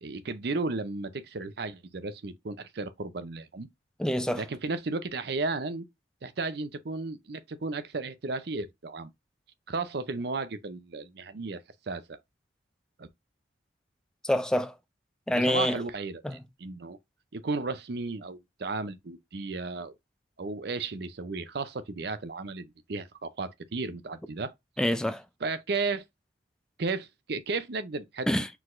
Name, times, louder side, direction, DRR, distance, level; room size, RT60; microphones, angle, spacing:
voice 1, 0.0-3.7 4.3-5.9 6.2-9.1 9.7-11.6 11.9-12.2 13.0-13.1 15.3-17.0 17.3-19.9 20.4-24.5 25.4-26.0 26.8-28.3, right 3 dB, 55° right, 0.5 m, -34 dB
voice 2, 4.0-4.4 14.2-14.7 15.3-15.8 16.2-16.3 24.8-25.2 28.3-28.5, left 1 dB, 5° left, 0.3 m, -26 dB
4.7 x 4.0 x 2.5 m
head